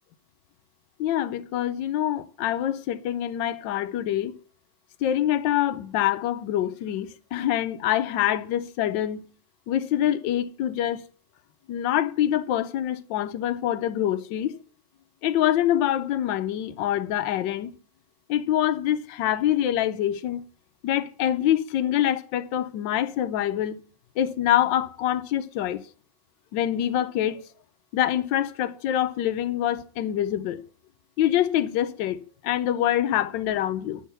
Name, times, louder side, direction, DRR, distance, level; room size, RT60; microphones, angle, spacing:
voice 1, 1.0-4.4 5.0-9.2 9.7-11.0 11.7-14.5 15.2-17.7 18.3-20.4 20.8-23.8 24.2-25.8 26.5-27.4 27.9-30.6 31.2-34.0, left 11 dB, 75° left, 1.3 m, -25 dB
11.0 x 6.5 x 6.7 m
omnidirectional pair, 2.2 m